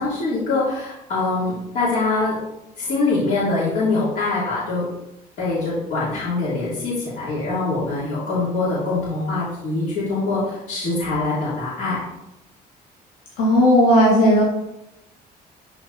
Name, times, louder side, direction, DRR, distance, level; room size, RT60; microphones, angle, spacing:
voice 1, 0.0-2.4 2.8-4.9 5.4-12.0, left 3 dB, 55° left, -9 dB, 3.6 m, -23 dB
voice 2, 13.4-14.4, equal, 85° left, -3 dB, 2.1 m, -15 dB
12.5 x 5.0 x 4.3 m, 0.87 s
cardioid pair, 170°, 16 cm